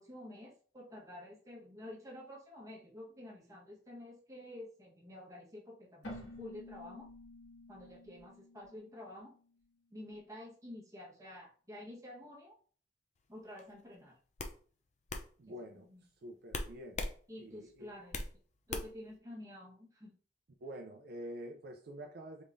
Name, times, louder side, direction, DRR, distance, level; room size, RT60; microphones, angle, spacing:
voice 1, 0.0-7.1 7.7-9.3 9.9-12.6 13.3-14.2 15.8-16.0 17.3-18.2 18.7-20.1, left 1 dB, 20° right, 1.2 m, -50 dB
Keyboard (musical), 6.0-9.7, left 1 dB, 75° left, 1.6 m, -51 dB
sound 1, 13.6-13.8 14.4-14.6 15.1-15.3 16.5-17.2 17.5-18.3 18.7-19.1, left 2 dB, 40° left, 0.5 m, -39 dB
voice 2, 15.4-15.9 16.2-17.0 17.4-17.9 20.6-22.4, equal, 55° right, 0.5 m, -47 dB
4.6 x 3.6 x 2.6 m
head